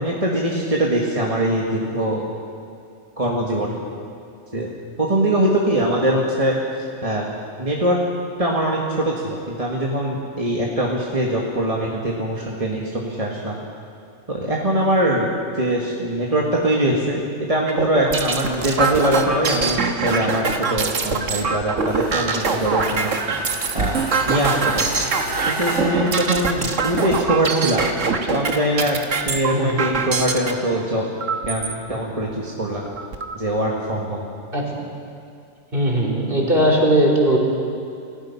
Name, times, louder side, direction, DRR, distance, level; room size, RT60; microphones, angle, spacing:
voice 1, 0.0-2.2 3.2-3.8 4.5-4.7 5.0-6.6 7.0-7.3 7.6-8.0 8.4-13.6 14.3-15.3 15.6-17.2 17.5-23.2 23.7-24.0 24.3-24.9 25.5-28.0 28.3-29.0 29.2-31.0 31.5-32.8 33.3-34.3, right 1 dB, 30° right, -3 dB, 1.9 m, -22 dB
sound 1, 17.7-30.5 31.2-31.7 32.3-32.4 32.7-33.3, right 4 dB, 90° right, 1.7 m, -23 dB
sound 2, 21.8-27.0, right 1 dB, 70° right, 4.0 m, -33 dB
voice 2, 35.7-37.4, right 1 dB, 45° right, -3 dB, 3.8 m, -18 dB
29.5 x 16.0 x 5.8 m, 2.5 s
omnidirectional pair, 1.3 m